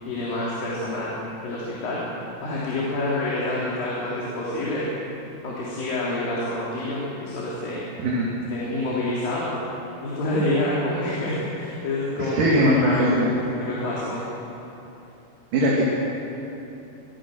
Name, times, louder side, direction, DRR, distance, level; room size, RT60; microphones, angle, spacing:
voice 1, 0.1-1.2 1.4-2.0 2.4-4.9 5.4-7.8 8.5-9.6 10.0-13.3 13.6-14.2, left 2 dB, 80° left, -6 dB, 4.9 m, -27 dB
voice 2, 12.2-13.3 15.5-15.8, equal, 70° right, -4 dB, 4.0 m, -20 dB
23.0 x 21.5 x 6.4 m, 3.0 s
omnidirectional pair, 4.0 m